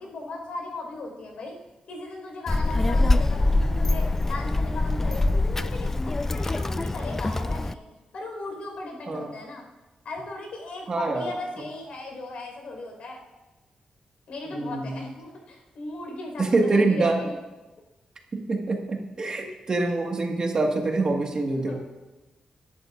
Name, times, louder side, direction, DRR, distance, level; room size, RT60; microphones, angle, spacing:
voice 1, 0.0-1.6 1.9-7.9 8.1-9.6 10.0-13.2 14.3-17.3 21.6-21.7, left 2 dB, 75° left, 0 dB, 4.8 m, -37 dB
Child speech kid speaking, 2.5-7.7, left 2 dB, 15° left, 0.3 m, -24 dB
voice 2, 10.9-11.3 14.5-15.0 16.4-17.2 18.3-21.7, right 3 dB, 35° right, 2 dB, 1.8 m, -25 dB
23.0 x 11.0 x 2.6 m, 1.1 s
wide cardioid pair, 135°, 2 cm